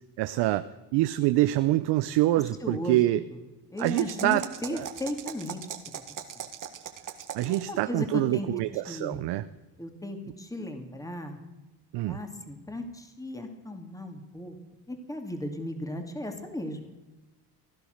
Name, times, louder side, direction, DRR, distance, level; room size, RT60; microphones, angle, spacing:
voice 1, 0.2-0.7 0.9-3.2 3.8-4.4 4.7-4.9 7.3-9.4 11.9-12.2, right 16 dB, 80° right, 12 dB, 0.7 m, -25 dB
voice 2, 2.6-3.0 3.7-5.6 6.3-6.4 7.4-8.5 8.9-9.2 9.8-11.4 12.1-14.6 14.9-16.9, left 1 dB, 10° left, 5 dB, 2.5 m, -36 dB
sound 1, 3.8-7.8, right 8 dB, 50° right, 1.7 m, -40 dB
17.0 x 11.5 x 6.5 m, 1.1 s
cardioid pair, 100°, 41 cm